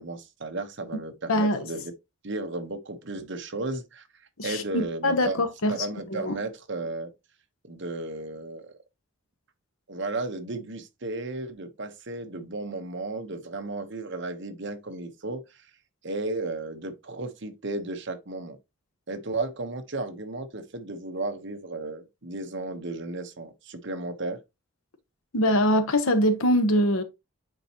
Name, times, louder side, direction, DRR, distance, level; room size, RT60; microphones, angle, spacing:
voice 1, 0.0-1.9 2.2-4.0 4.4-5.4 5.7-7.1 7.6-8.7 9.9-15.7 16.0-18.6 19.1-24.4, right 2 dB, 55° right, 1.2 m, -34 dB
voice 2, 1.3-1.6 4.4-5.7 6.1-6.4 25.3-27.0, left 1 dB, 75° left, 1.2 m, -23 dB
9.1 x 4.2 x 3.0 m
head